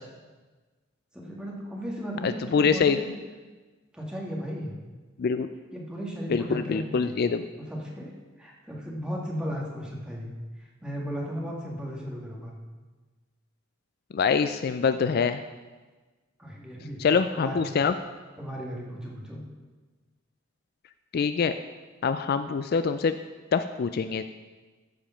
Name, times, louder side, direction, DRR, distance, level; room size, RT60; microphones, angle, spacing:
voice 1, 1.1-3.1 3.9-4.7 5.7-7.2 7.6-8.1 8.4-10.3 10.6-12.5 16.4-17.0 17.3-17.6 18.4-19.4, equal, 5° right, -3 dB, 1.8 m, -35 dB
voice 2, 2.2-3.0 5.2-5.5 6.3-7.5 14.1-15.4 17.0-17.9 21.1-21.5 22.0-23.2 23.5-24.2, left 5 dB, 50° left, 10 dB, 0.4 m, -24 dB
14.0 x 5.1 x 5.7 m, 1.3 s
head